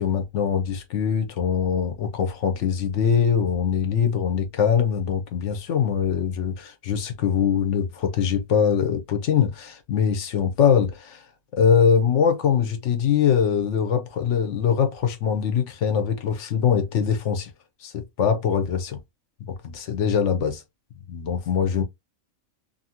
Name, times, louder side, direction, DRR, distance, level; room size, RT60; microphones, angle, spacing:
voice 1, 0.0-11.2 11.6-17.5 17.8-19.0 19.4-20.6 21.1-21.8, left 7 dB, 65° left, 0.9 m, -22 dB
2.7 x 2.7 x 2.7 m
omnidirectional pair, 1.5 m